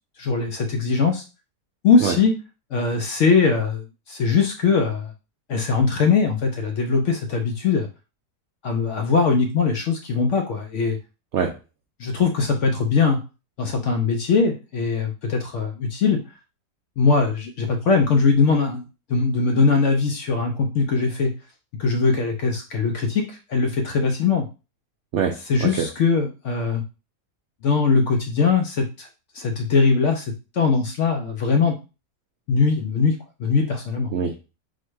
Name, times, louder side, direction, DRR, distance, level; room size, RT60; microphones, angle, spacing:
voice 1, 0.2-1.2 1.8-2.3 2.7-5.1 5.5-7.9 8.6-11.0 12.0-13.2 13.6-16.2 17.0-18.8 19.1-21.3 21.8-24.5 25.5-26.8 27.6-29.1 29.3-30.2 30.5-31.7 32.5-34.1, left 4 dB, 70° left, 4 dB, 0.7 m, -21 dB
voice 2, 25.1-25.9 34.1-34.5, right 7 dB, 75° right, 4 dB, 0.6 m, -24 dB
4.2 x 2.1 x 4.6 m, 0.30 s
omnidirectional pair, 1.7 m